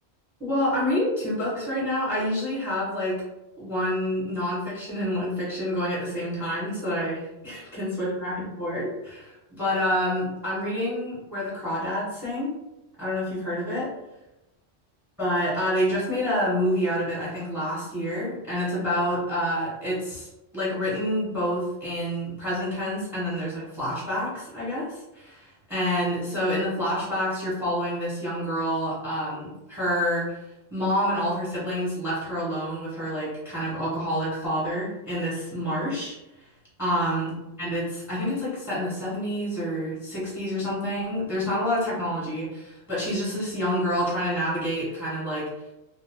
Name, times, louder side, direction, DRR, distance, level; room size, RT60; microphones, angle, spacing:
voice 1, 0.4-3.2 3.6-12.5 13.0-13.9 15.2-20.3 20.5-30.4 30.7-36.2 36.8-45.5, equal, ahead, -7 dB, 0.9 m, -28 dB
2.6 x 2.0 x 3.4 m, 0.96 s
omnidirectional pair, 1.1 m